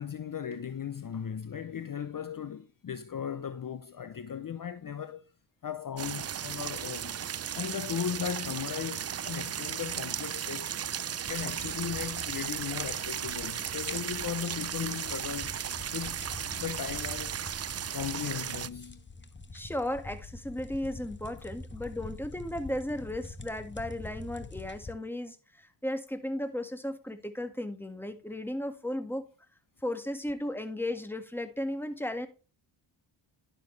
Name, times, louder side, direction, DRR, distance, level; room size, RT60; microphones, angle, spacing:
voice 1, 0.0-5.2 5.6-7.2 7.5-10.7 11.3-15.5 15.9-16.2 16.6-17.4 17.9-19.0, left 8 dB, 40° left, 0.7 m, -37 dB
sound 1, 6.0-18.7, right 9 dB, 35° right, 0.4 m, -35 dB
sound 2, 11.3-24.9, left 3 dB, 20° left, 1.2 m, -46 dB
voice 2, 19.5-29.3 29.8-32.3, left 1 dB, 5° left, 1.7 m, -35 dB
10.5 x 6.9 x 3.2 m
cardioid pair, 55°, 50 cm